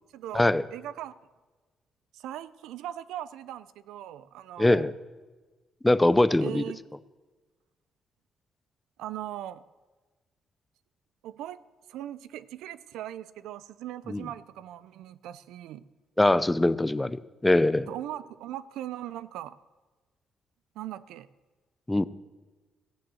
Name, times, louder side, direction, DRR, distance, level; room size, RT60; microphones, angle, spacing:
voice 1, 0.1-1.1 2.1-4.9 6.4-6.8 9.0-9.6 11.2-11.6 11.9-15.8 17.9-19.6 20.8-21.3, right 12 dB, 90° right, 17 dB, 0.5 m, -39 dB
voice 2, 4.6-4.9 5.8-6.6 14.1-14.3 16.2-17.9 21.9-22.1, left 1 dB, 10° left, 16 dB, 0.5 m, -22 dB
15.0 x 8.9 x 7.6 m, 1.3 s
cardioid pair, 90°, 0 cm